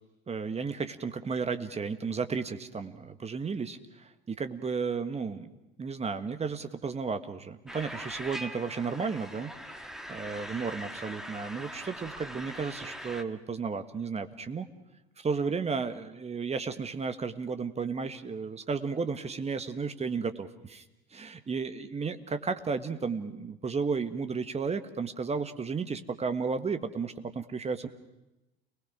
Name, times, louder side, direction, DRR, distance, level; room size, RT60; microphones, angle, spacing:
voice 1, 0.3-5.5 5.8-14.7 15.2-20.8 21.1-27.9, right 5 dB, 20° right, 9 dB, 1.6 m, -33 dB
sound 1, 7.7-13.2, equal, ahead, 1.6 m, -42 dB
29.5 x 20.0 x 6.2 m, 0.99 s
figure-of-eight pair, 75°, 31 cm